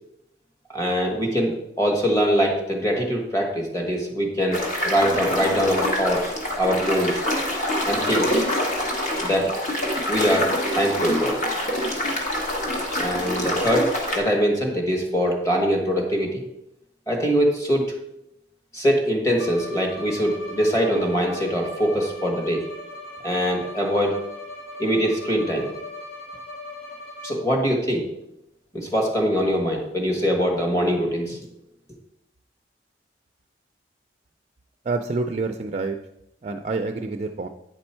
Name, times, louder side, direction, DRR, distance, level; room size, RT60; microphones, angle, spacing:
voice 1, 0.7-7.2 7.9-8.4 9.2-9.5 10.1-11.3 13.0-13.9 14.1-16.4 17.1-17.9 18.7-22.6 23.2-24.1 24.8-25.7 27.2-28.0 28.7-31.4, equal, 15° left, 0 dB, 1.5 m, -23 dB
sound 1, 4.5-14.2, left 1 dB, 40° left, 1.6 m, -25 dB
Bowed string instrument, 19.4-27.6, left 1 dB, 60° left, 1.6 m, -39 dB
voice 2, 34.9-36.0 36.4-37.5, right 3 dB, 35° right, 6 dB, 0.4 m, -27 dB
9.2 x 5.3 x 4.4 m, 0.82 s
head